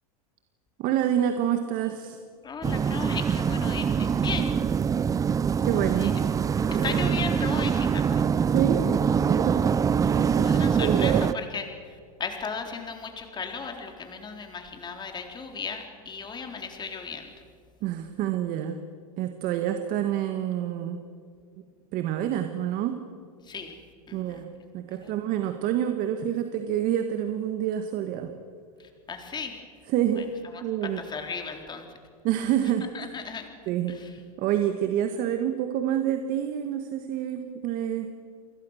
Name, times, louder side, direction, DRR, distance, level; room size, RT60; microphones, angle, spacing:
voice 1, 0.8-2.2 5.7-6.1 6.7-7.0 8.5-9.7 10.1-10.5 10.8-11.3 17.8-18.8 19.2-21.0 21.9-23.0 24.1-28.3 29.9-30.3 30.6-31.0 32.2-32.9 33.7-34.0 34.4-38.1, right 10 dB, 50° right, 7 dB, 1.8 m, -27 dB
voice 2, 2.4-4.5 5.8-6.1 6.8-8.2 10.4-11.7 12.2-17.3 23.5-23.8 24.1-24.4 25.0-25.1 29.1-29.5 31.0-31.8 32.9-33.5 33.9-34.1, left 5 dB, 25° left, 4 dB, 3.8 m, -36 dB
sound 1, 2.6-11.3, right 7 dB, 20° right, 0.5 m, -24 dB
29.5 x 21.5 x 6.6 m, 2.1 s
hypercardioid pair, 110°, 19 cm